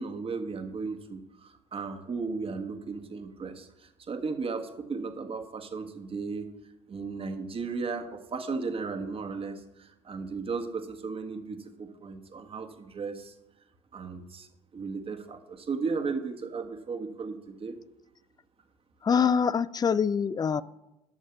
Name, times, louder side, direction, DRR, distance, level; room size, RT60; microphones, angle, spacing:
voice 1, 0.0-6.5 6.9-13.3 13.9-14.5 14.7-17.7, right 4 dB, 40° right, 5 dB, 1.6 m, -35 dB
voice 2, 19.0-20.6, left 6 dB, 25° left, 19 dB, 0.4 m, -24 dB
12.0 x 6.3 x 5.9 m, 0.93 s
hypercardioid pair, 55°, 15 cm